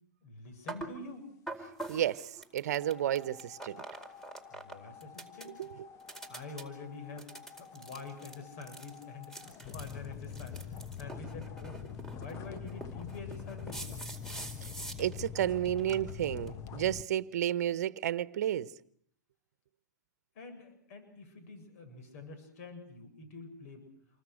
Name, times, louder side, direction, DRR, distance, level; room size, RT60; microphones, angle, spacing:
voice 1, 0.2-1.3 4.5-5.5 6.3-7.3 7.6-11.8 12.1-13.9 20.3-23.9, left 3 dB, 55° left, 7.8 m, -46 dB
sound 1, 0.7-0.9 1.5-4.7 5.0-5.6 6.0-6.6 7.2-15.4 15.7-16.0 16.5-16.6, right 2 dB, 5° left, 4.4 m, -44 dB
voice 2, 1.9-3.8 5.4-5.9 14.6-14.7 15.0-18.7, right 11 dB, 60° right, 1.1 m, -32 dB
sound 2, 2.6-17.0, left 8 dB, 30° left, 1.2 m, -46 dB
28.5 x 24.0 x 6.5 m
hypercardioid pair, 115°, 10 cm